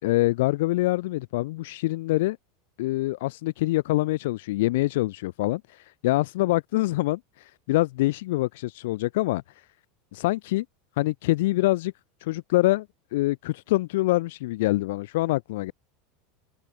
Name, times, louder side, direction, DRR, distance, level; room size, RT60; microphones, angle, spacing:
voice 1, 0.0-2.4 2.8-5.6 6.0-7.2 7.7-9.4 10.1-10.7 11.0-11.9 12.2-12.9 13.1-15.7, left 18 dB, 70° left, 5.4 m, -25 dB
open air
supercardioid pair, 165°, 0 cm